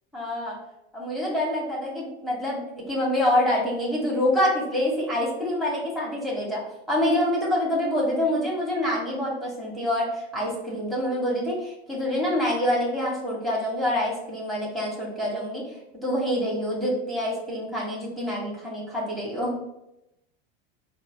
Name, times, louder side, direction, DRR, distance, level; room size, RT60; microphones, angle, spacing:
voice 1, 0.1-0.6 0.9-2.6 2.9-6.6 6.9-15.6 16.0-19.5, left 1 dB, ahead, -5 dB, 1.2 m, -26 dB
4.0 x 2.0 x 4.2 m, 0.86 s
supercardioid pair, 105°, 32 cm